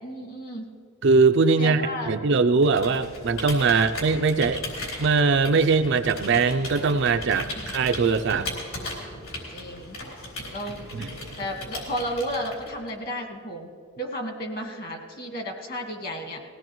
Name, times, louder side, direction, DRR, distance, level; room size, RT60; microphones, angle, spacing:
voice 1, 0.0-0.7 1.6-2.1 3.7-3.9 7.5-7.7 9.5-10.0 10.5-11.1 11.4-13.7 14.0-16.4, equal, 40° left, 3 dB, 1.7 m, -33 dB
voice 2, 1.0-4.6 5.0-8.5 10.9-11.1, right 4 dB, 50° right, 9 dB, 0.4 m, -21 dB
Computer keyboard, 2.6-12.9, left 2 dB, 65° left, 3.9 m, -37 dB
20.5 x 16.5 x 3.1 m, 2.2 s
head